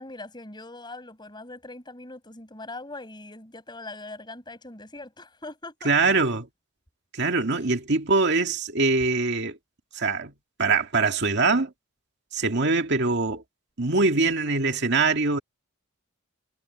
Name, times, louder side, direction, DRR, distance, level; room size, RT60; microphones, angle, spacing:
voice 1, 0.0-6.1, left 2 dB, 20° left, 7.7 m, -41 dB
voice 2, 5.8-6.4 7.1-9.6 9.9-10.3 10.6-11.7 12.3-13.4 13.8-15.4, right 3 dB, 55° right, 2.2 m, -23 dB
head